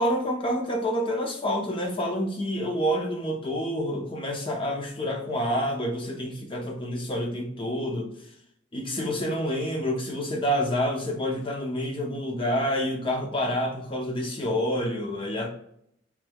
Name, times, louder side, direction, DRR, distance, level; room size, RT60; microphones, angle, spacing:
voice 1, 0.0-8.1 8.7-15.5, equal, 25° left, 2 dB, 0.7 m, -28 dB
5.2 x 3.1 x 2.3 m, 0.70 s
head